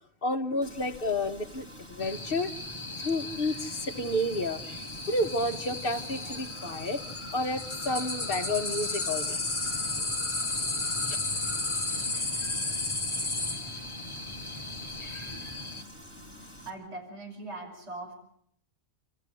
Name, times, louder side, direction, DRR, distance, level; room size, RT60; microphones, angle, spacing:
voice 1, 0.2-2.5 3.0-4.6 5.1-7.0 7.3-9.4 11.1-11.2, left 1 dB, 45° left, 5 dB, 1.7 m, -30 dB
Frying (food), 0.6-16.7, equal, 10° right, 5.6 m, -48 dB
sound 1, 2.0-15.8, left 2 dB, 25° left, 1.4 m, -34 dB
sound 2, 9.3-15.6, equal, 30° right, 4.1 m, -50 dB
voice 2, 16.4-18.2, right 2 dB, 60° right, 1 dB, 6.4 m, -41 dB
30.0 x 14.5 x 9.8 m, 0.70 s
omnidirectional pair, 1.3 m